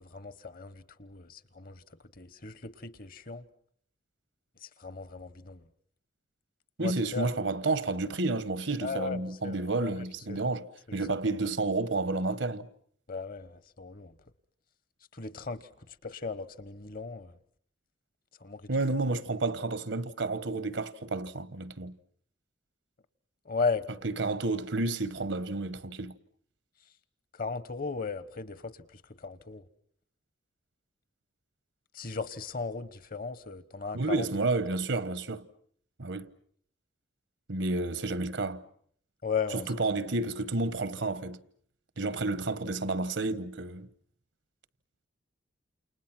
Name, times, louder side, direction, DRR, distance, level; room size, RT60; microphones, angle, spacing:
voice 1, 0.0-1.8 2.2-3.5 4.6-5.6 6.8-7.3 8.8-9.9 10.3-10.4 10.9-11.0 13.1-14.1 15.1-17.3 18.4-18.7 23.4-23.9 27.3-29.7 31.9-34.2 39.2-39.7, left 5 dB, 45° left, 1.1 m, -36 dB
voice 2, 6.8-12.7 18.7-22.0 24.0-26.2 33.9-35.5 36.0-36.3 37.5-38.7 39.5-41.4 42.0-43.9, right 3 dB, 70° right, 1.1 m, -31 dB
29.0 x 28.5 x 6.0 m
head